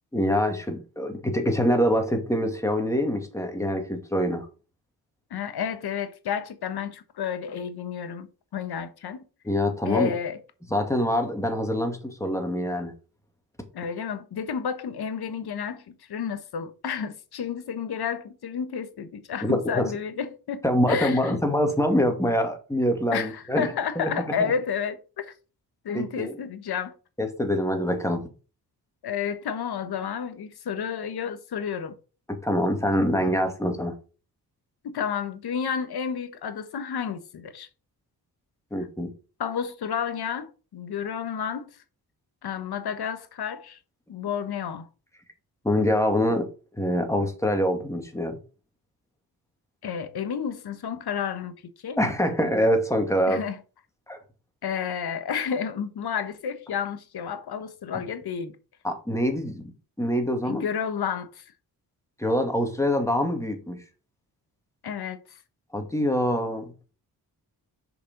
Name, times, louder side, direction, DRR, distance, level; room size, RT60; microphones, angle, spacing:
voice 1, 0.1-4.5 9.4-10.1 10.7-12.9 19.4-19.9 20.6-23.7 24.0-24.1 24.4-24.5 25.9-26.4 27.2-28.3 32.3-33.9 38.7-39.1 45.6-46.5 46.8-48.4 52.0-53.4 54.1-54.2 58.8-59.6 60.0-60.7 62.2-63.8 65.7-66.7, equal, 5° left, 2.2 m, -25 dB
voice 2, 5.3-8.3 8.5-9.2 9.8-10.4 13.7-21.4 23.1-25.3 25.8-26.9 29.0-31.9 34.8-37.7 39.4-41.7 42.4-43.8 44.1-44.8 49.8-51.5 51.8-52.0 53.3-53.6 54.6-58.6 60.4-61.4 64.8-65.2, left 7 dB, 75° left, 1.2 m, -31 dB
6.6 x 5.2 x 5.2 m
cardioid pair, 80°, 38 cm